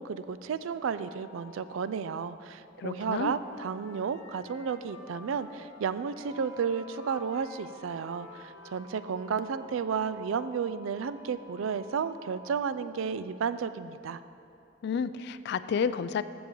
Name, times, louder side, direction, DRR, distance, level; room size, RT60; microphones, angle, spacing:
voice 1, 0.0-14.2, right 6 dB, 85° right, 13 dB, 0.4 m, -32 dB
sound 1, 0.9-1.8 6.2-12.5, left 1 dB, 25° right, 1.4 m, -52 dB
Wind instrument woodwind instrument, 2.8-9.4, left 2 dB, 80° left, 0.8 m, -52 dB
voice 2, 2.8-3.3 14.8-16.2, left 6 dB, 55° left, 13 dB, 0.3 m, -30 dB
14.0 x 6.9 x 3.8 m, 2.8 s
head